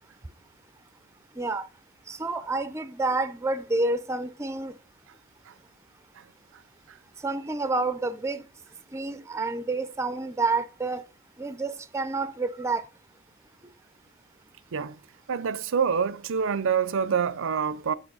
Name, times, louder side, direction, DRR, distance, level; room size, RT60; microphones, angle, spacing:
voice 1, 1.4-1.7 2.1-4.8 7.2-8.5 8.9-11.0 11.4-12.8, right 3 dB, 15° right, 0.5 m, -29 dB
voice 2, 15.3-17.9, right 6 dB, 65° right, 0.5 m, -26 dB
7.9 x 7.1 x 5.4 m
head